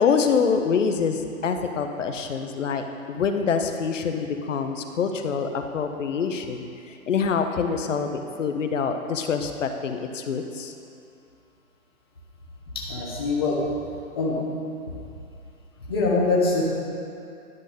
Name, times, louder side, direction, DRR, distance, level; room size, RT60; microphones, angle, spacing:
voice 1, 0.0-10.7, left 6 dB, 60° left, 6 dB, 0.7 m, -25 dB
voice 2, 12.7-13.6 14.1-14.4 15.9-16.6, left 3 dB, 20° left, -5 dB, 0.6 m, -23 dB
11.0 x 3.9 x 6.3 m, 2.5 s
hypercardioid pair, 165°, 43 cm